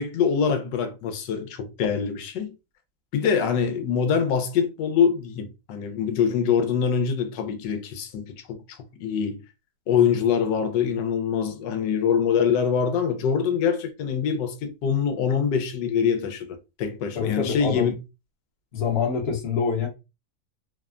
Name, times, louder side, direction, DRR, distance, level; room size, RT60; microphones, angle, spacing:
voice 1, 0.0-2.5 3.1-9.4 9.9-18.0, left 7 dB, 85° left, 1.2 m, -24 dB
voice 2, 17.1-17.9 18.7-19.9, left 6 dB, 45° left, 0.9 m, -25 dB
3.2 x 2.1 x 2.4 m
omnidirectional pair, 1.9 m